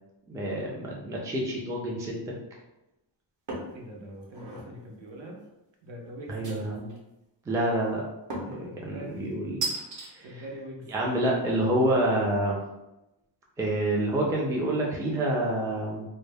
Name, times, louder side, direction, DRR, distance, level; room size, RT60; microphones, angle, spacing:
voice 1, 0.3-2.3 6.3-6.9 7.5-8.0 8.4-9.7 10.1-10.4 10.9-12.6 13.6-16.0, right 1 dB, 10° right, -3 dB, 0.3 m, -28 dB
sound 1, 3.5-3.8 4.2-4.7 6.4-7.0 8.3-8.7 9.6-10.1, right 2 dB, 40° right, 0.8 m, -34 dB
voice 2, 3.7-5.4 5.8-6.7 8.7-9.2 9.9-10.9, equal, 70° right, 0 dB, 0.8 m, -43 dB
2.1 x 2.0 x 3.3 m, 0.95 s
cardioid pair, 110°, 48 cm